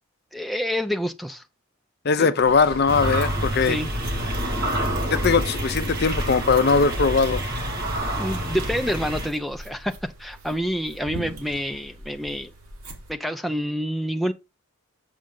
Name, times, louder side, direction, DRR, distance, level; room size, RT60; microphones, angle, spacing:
voice 1, 0.3-1.4 2.2-2.3 3.7-3.9 8.1-9.9 10.2-12.5 13.1-14.3, equal, ahead, 0.5 m, -27 dB
voice 2, 2.0-3.8 5.1-7.4, left 5 dB, 50° left, 0.5 m, -20 dB
sound 1, 2.4-13.1, right 1 dB, 80° right, 3.3 m, -41 dB
sound 2, 2.9-9.3, equal, 45° right, 2.0 m, -27 dB
7.1 x 6.4 x 3.8 m
head